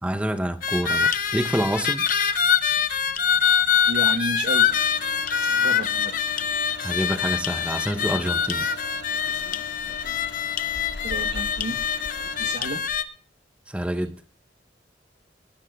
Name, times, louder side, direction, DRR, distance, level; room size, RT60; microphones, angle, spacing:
voice 1, 0.0-2.1 6.8-8.7 13.7-14.2, right 1 dB, 5° right, 0.7 m, -27 dB
sound 1, 0.6-13.0, left 7 dB, 50° left, 0.7 m, -24 dB
voice 2, 3.9-4.7 5.4-6.2 11.0-11.8 12.4-12.9, right 1 dB, 70° right, 1.1 m, -32 dB
sound 2, 4.7-12.5, left 4 dB, 75° left, 1.9 m, -42 dB
21.5 x 18.5 x 2.3 m
head